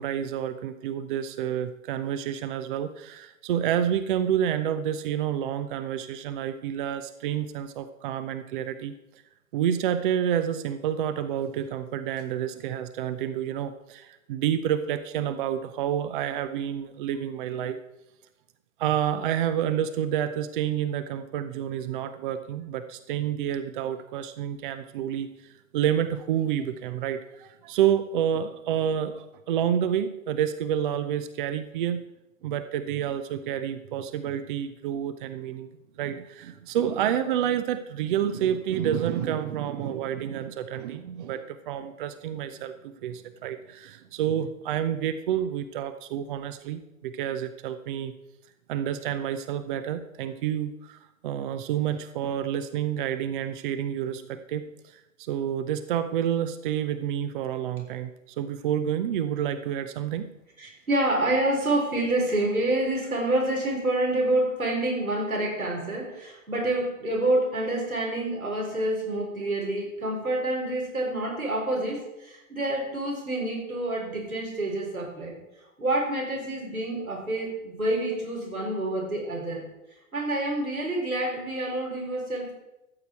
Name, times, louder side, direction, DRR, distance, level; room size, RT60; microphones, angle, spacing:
voice 1, 0.0-8.9 9.5-17.8 18.8-32.0 32.4-35.7 36.0-48.1 48.7-58.1 58.4-60.3, right 10 dB, 40° right, 11 dB, 0.6 m, -29 dB
voice 2, 60.6-75.3 75.8-79.6 80.1-82.6, right 1 dB, 85° right, -2 dB, 4.3 m, -27 dB
13.5 x 8.1 x 4.5 m, 0.95 s
figure-of-eight pair, 105°, 41 cm